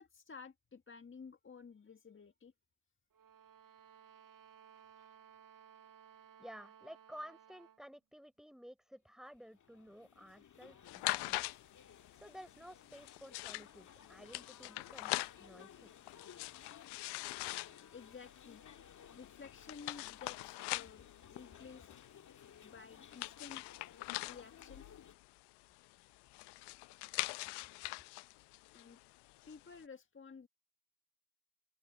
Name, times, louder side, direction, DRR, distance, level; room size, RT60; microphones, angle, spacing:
voice 1, 0.0-2.5 5.0-5.2 17.9-18.6 19.1-22.0 22.6-23.6 24.3-24.8 28.7-29.0 29.4-30.5, left 5 dB, 30° left, 1.7 m, -53 dB
sound 1, 3.1-7.8, right 8 dB, 50° right, 1.6 m, -60 dB
voice 2, 6.4-11.4 12.1-15.9, equal, ahead, 4.0 m, -54 dB
sound 2, 9.2-25.1, left 8 dB, 45° left, 1.9 m, -59 dB
sound 3, 10.9-29.8, left 23 dB, 70° left, 0.7 m, -44 dB
hypercardioid pair, 45°, 42 cm